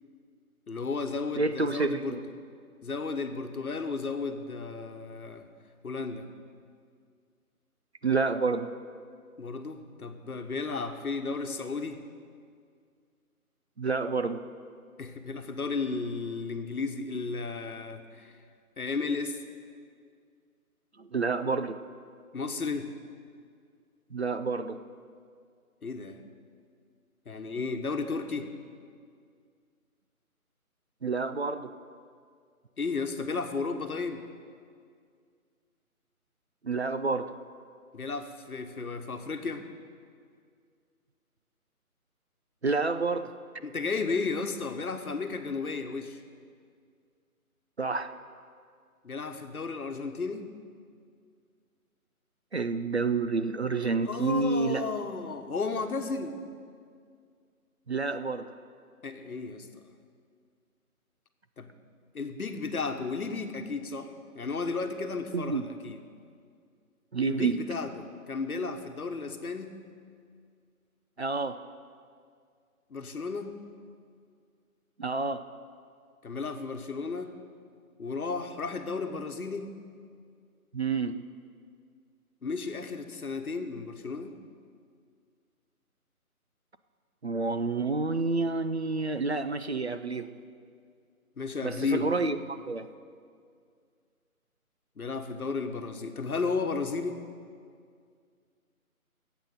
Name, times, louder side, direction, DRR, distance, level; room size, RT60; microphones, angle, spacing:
voice 1, 0.7-2.2 2.8-5.4 5.8-6.3 9.4-12.0 15.0-18.3 18.8-19.4 22.3-22.9 25.8-26.2 27.3-28.5 32.8-34.2 37.9-39.6 43.6-46.2 49.0-50.5 54.0-56.4 59.0-59.8 61.6-61.7 62.1-66.0 67.2-69.7 72.9-73.5 76.2-77.3 78.0-79.7 82.4-84.3 91.4-92.2 95.0-97.2, left 4 dB, 75° left, 7 dB, 1.2 m, -33 dB
voice 2, 1.4-2.2 8.0-8.7 13.8-14.4 21.0-21.8 24.1-24.8 31.0-31.7 36.6-37.3 42.6-43.3 47.8-48.1 52.5-54.8 57.9-58.5 65.3-65.6 67.1-67.6 71.2-71.6 75.0-75.4 80.7-81.2 87.2-90.3 91.6-92.9, right 4 dB, 50° right, 10 dB, 0.5 m, -29 dB
12.5 x 8.2 x 6.7 m, 2.2 s
figure-of-eight pair, 160°, 44 cm